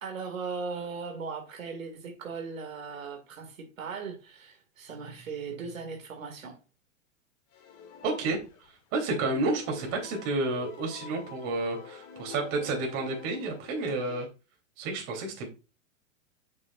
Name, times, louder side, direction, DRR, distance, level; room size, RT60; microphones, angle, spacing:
voice 1, 0.0-6.6, right 5 dB, 85° right, 2.2 m, -38 dB
sound 1, 7.5-8.8 9.1-14.3, left 5 dB, 35° left, 2.2 m, -46 dB
voice 2, 8.0-8.4 8.9-14.3 14.8-15.5, right 2 dB, 40° right, 3.3 m, -30 dB
7.2 x 6.4 x 2.4 m
hypercardioid pair, 125°, 39 cm